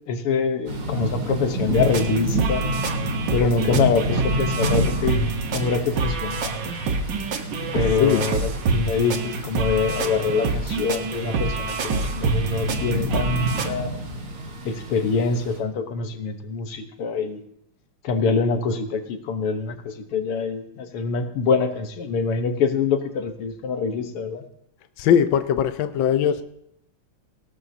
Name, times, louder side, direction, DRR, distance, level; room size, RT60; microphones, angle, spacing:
voice 1, 0.1-2.6 3.3-5.2 5.5-6.5 7.7-13.9 14.7-17.4 18.0-24.4, left 5 dB, 90° left, 7 dB, 2.1 m, -25 dB
Thunder / Rain, 0.7-15.6, equal, 85° right, 3.0 m, -29 dB
sound 1, 1.7-13.7, right 4 dB, 60° right, 1.7 m, -27 dB
voice 2, 25.0-26.4, left 8 dB, 70° left, 10 dB, 1.4 m, -20 dB
19.0 x 17.5 x 2.8 m, 0.75 s
omnidirectional pair, 2.4 m